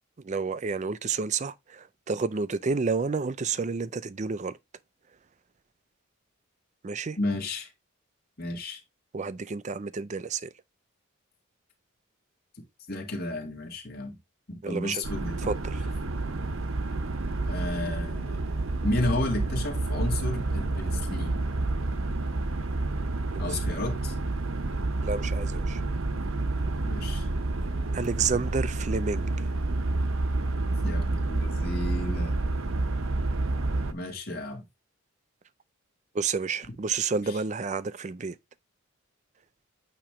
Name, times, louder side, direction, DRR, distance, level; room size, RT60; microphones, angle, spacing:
voice 1, 0.2-4.6 6.8-7.2 9.1-10.5 14.6-15.0 15.4-15.8 23.3-23.6 25.0-25.8 27.9-29.3 36.1-38.4, right 4 dB, 35° right, 0.4 m, -30 dB
voice 2, 7.2-7.7 8.4-8.8 12.9-14.2 14.5-15.5 17.4-18.4 18.8-21.4 23.4-24.1 26.8-27.3 30.8-32.4 33.9-34.6 37.3-37.4, left 2 dB, 45° left, 2.2 m, -32 dB
sound 1, 15.0-33.9, right 2 dB, 65° right, 0.8 m, -29 dB
8.7 x 3.0 x 4.9 m
head